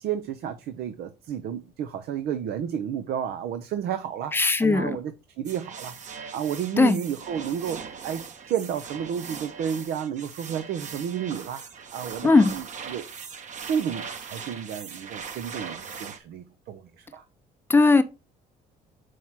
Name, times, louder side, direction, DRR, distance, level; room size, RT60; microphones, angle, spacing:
voice 1, 0.0-11.6 11.9-13.1 13.7-17.2, right 8 dB, 70° right, 0.7 m, -32 dB
voice 2, 4.3-5.0 6.8-7.0 12.2-12.5 17.7-18.0, left 3 dB, 15° left, 0.7 m, -18 dB
sound 1, 5.4-16.2, right 6 dB, 45° right, 1.0 m, -40 dB
4.7 x 4.5 x 5.7 m
cardioid pair, 110°, 17 cm